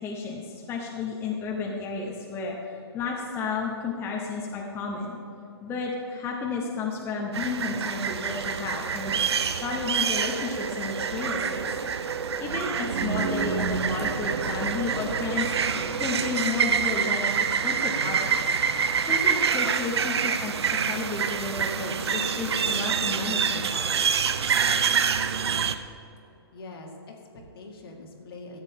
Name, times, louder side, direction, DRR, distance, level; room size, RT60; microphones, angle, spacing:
voice 1, 0.0-5.2 5.6-9.2 9.6-11.7 12.4-15.5 16.0-17.3 17.6-18.5 19.1-24.0, left 4 dB, 15° left, -2 dB, 1.0 m, -32 dB
sound 1, 7.3-25.7, right 6 dB, 70° right, 0.7 m, -26 dB
Organ, 12.0-22.5, equal, 40° left, 1.3 m, -48 dB
voice 2, 26.5-28.6, left 2 dB, 60° left, 1 dB, 2.1 m, -43 dB
14.0 x 8.8 x 3.7 m, 2.8 s
hypercardioid pair, 135°, 14 cm